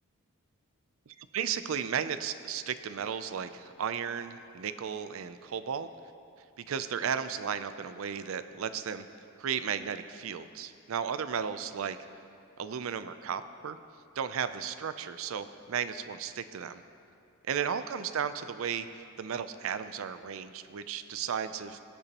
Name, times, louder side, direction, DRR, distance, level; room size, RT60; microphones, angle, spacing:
voice 1, 1.1-5.9 6.6-9.1 9.4-12.0 12.6-13.8 14.2-16.8 17.5-21.8, right 7 dB, 75° right, 12 dB, 0.4 m, -34 dB
18.5 x 6.9 x 2.9 m, 2.6 s
head